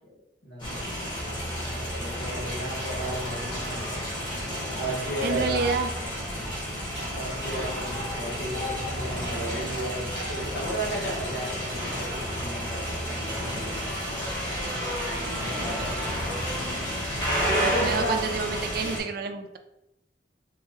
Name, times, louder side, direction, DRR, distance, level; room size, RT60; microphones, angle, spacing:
voice 1, 0.4-0.9 1.6-4.0 4.7-5.7 7.1-13.9 15.4-15.9 17.5-18.2, right 1 dB, 65° left, -3 dB, 1.3 m, -34 dB
sound 1, 0.6-19.0, equal, 25° left, 1.3 m, -31 dB
voice 2, 5.2-5.9 15.1-15.9 17.6-19.6, right 5 dB, 55° right, 7 dB, 0.4 m, -30 dB
3.8 x 3.0 x 3.0 m, 0.87 s
head